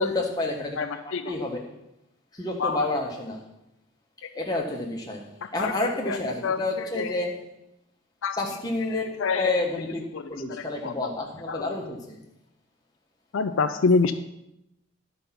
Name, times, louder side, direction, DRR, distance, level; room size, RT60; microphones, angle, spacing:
voice 1, 0.0-1.0 1.2-1.6 2.3-3.4 4.3-5.2 5.5-7.4 8.4-9.1 9.3-12.2, left 2 dB, 20° left, -1 dB, 1.4 m, -29 dB
voice 2, 0.8-1.3 2.6-2.9 4.2-4.4 5.4-5.7 6.1-7.1 8.2-8.4 9.2-9.5 10.1-10.2 10.5-10.9 11.5-11.7 13.3-14.1, left 4 dB, 70° left, 9 dB, 0.4 m, -27 dB
11.5 x 5.3 x 5.9 m, 0.86 s
head